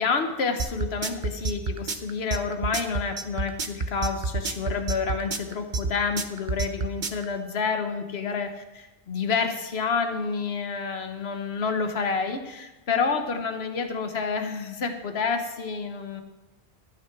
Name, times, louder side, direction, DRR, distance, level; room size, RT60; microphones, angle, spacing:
voice 1, 0.0-16.2, left 5 dB, 65° left, 6 dB, 1.3 m, -29 dB
sound 1, 0.6-7.2, right 4 dB, 50° right, 0.8 m, -28 dB
13.5 x 6.2 x 6.0 m, 1.0 s
omnidirectional pair, 1.1 m